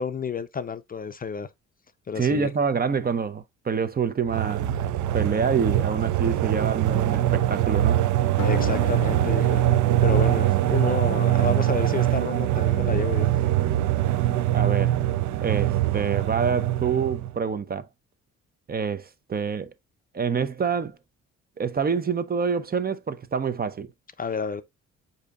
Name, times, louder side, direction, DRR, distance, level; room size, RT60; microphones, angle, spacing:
voice 1, 0.0-1.5 2.1-2.5 8.4-9.6 10.0-13.3 24.2-24.6, left 6 dB, 30° left, 0.5 m, -30 dB
voice 2, 2.1-4.7 5.1-8.0 14.5-15.0 15.4-17.9 18.7-19.7 20.1-21.0 21.6-23.9, right 6 dB, 30° right, 0.6 m, -26 dB
sound 1, 4.3-17.4, right 13 dB, 75° right, 0.5 m, -23 dB
sound 2, 8.4-11.6, left 13 dB, 85° left, 0.5 m, -38 dB
8.0 x 2.8 x 2.3 m
cardioid pair, 90°, 30 cm